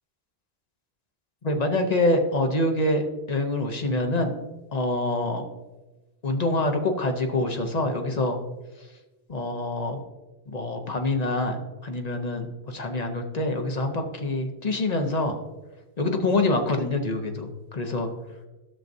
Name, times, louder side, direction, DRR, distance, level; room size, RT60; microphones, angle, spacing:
voice 1, 1.4-4.3 4.7-5.5 6.2-8.4 8.8-8.9 9.3-10.0 10.5-15.4 16.0-18.1, left 2 dB, 45° left, 4 dB, 0.8 m, -26 dB
12.0 x 6.5 x 2.6 m, 1.1 s
omnidirectional pair, 1.1 m